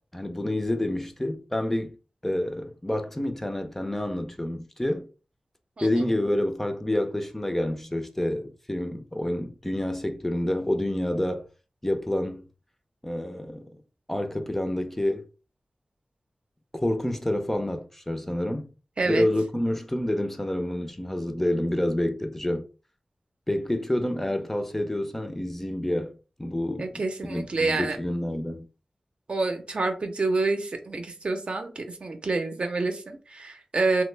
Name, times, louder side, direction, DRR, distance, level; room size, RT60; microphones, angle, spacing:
voice 1, 0.1-1.9 2.2-5.1 5.8-11.5 11.8-12.4 13.0-13.6 14.1-15.3 16.7-18.7 19.1-22.7 23.5-28.7, left 1 dB, 15° left, 0.4 m, -28 dB
voice 2, 19.0-19.3 26.8-28.0 29.3-34.0, right 3 dB, 60° right, 0.6 m, -27 dB
2.9 x 2.0 x 3.2 m
wide cardioid pair, 80°, 2 cm